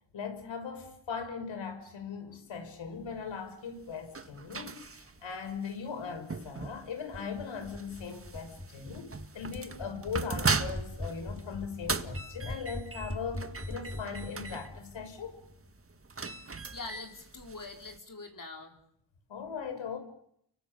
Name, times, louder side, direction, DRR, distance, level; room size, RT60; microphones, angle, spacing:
voice 1, 0.1-15.4 19.3-20.0, left 6 dB, 80° left, 6.1 m, -39 dB
sound 1, 3.4-18.0, right 4 dB, 30° right, 1.8 m, -39 dB
sound 2, 7.1-15.8, left 1 dB, 10° left, 2.8 m, -43 dB
voice 2, 16.7-18.8, left 3 dB, 45° left, 4.1 m, -44 dB
29.5 x 24.5 x 7.0 m
cardioid pair, 75°, 45 cm